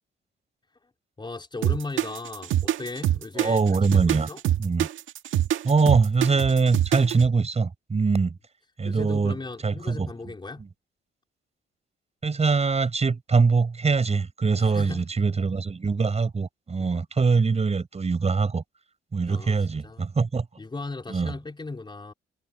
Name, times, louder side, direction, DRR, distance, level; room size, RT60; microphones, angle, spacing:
voice 1, 1.2-3.6 3.9-4.4 8.8-10.7 14.6-15.1 16.8-17.0 19.3-19.6 19.8-20.0 20.6-22.1, left 3 dB, 25° left, 4.2 m, -36 dB
sound 1, 1.6-7.3, right 12 dB, 80° right, 2.0 m, -24 dB
voice 2, 3.4-4.3 4.6-4.9 5.6-8.4 8.8-9.4 9.6-10.1 12.2-18.6 19.1-20.5 21.1-21.3, right 4 dB, 30° right, 7.4 m, -23 dB
cardioid pair, 90°, 20 cm